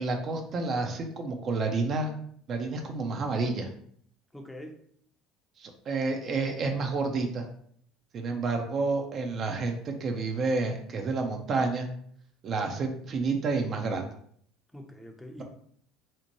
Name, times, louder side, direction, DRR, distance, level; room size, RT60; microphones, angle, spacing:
voice 1, 0.0-2.1 2.5-3.7 5.6-7.5 8.1-11.9 12.4-14.1, right 3 dB, 45° right, 4 dB, 0.4 m, -29 dB
voice 2, 4.3-4.8 14.7-15.4, equal, 5° left, 2 dB, 0.5 m, -43 dB
2.8 x 2.1 x 2.9 m, 0.62 s
hypercardioid pair, 75°, 0 cm